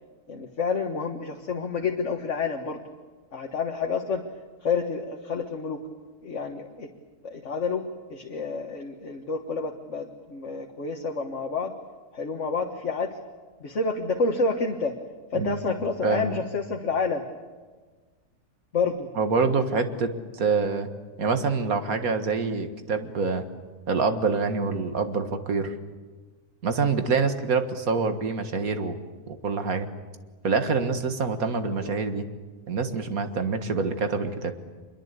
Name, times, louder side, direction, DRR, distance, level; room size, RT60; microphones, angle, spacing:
voice 1, 0.3-2.8 3.3-4.2 4.6-5.8 6.2-6.9 7.2-11.7 12.1-13.2 13.6-15.0 15.3-17.2 18.7-19.1 31.7-31.9, left 4 dB, 50° left, 3 dB, 1.8 m, -29 dB
voice 2, 16.0-16.4 19.2-20.9 21.2-23.4 23.9-25.8 26.6-29.0 29.4-29.9 30.4-32.3 32.7-34.5, right 4 dB, 65° right, 8 dB, 2.1 m, -26 dB
25.5 x 22.0 x 8.3 m, 1.4 s
omnidirectional pair, 1.7 m